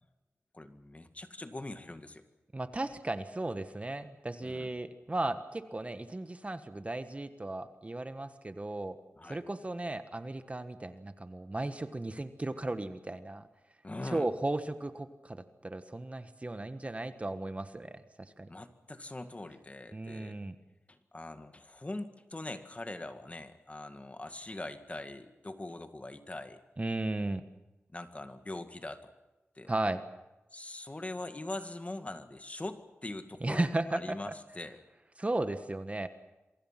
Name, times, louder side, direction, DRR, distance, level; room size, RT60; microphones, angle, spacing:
voice 1, 0.5-2.2 4.4-4.7 9.2-9.4 13.8-14.3 18.5-20.4 20.9-26.6 27.9-29.1 29.6-29.7 30.5-34.8, left 2 dB, 30° left, 8 dB, 2.0 m, -42 dB
voice 2, 2.5-9.0 9.3-13.4 14.0-18.5 19.9-20.5 26.8-27.4 29.7-30.0 33.4-34.3 35.2-36.1, right 2 dB, 30° right, 10 dB, 1.4 m, -35 dB
27.5 x 24.0 x 5.9 m, 1.0 s
wide cardioid pair, 80°, 4 cm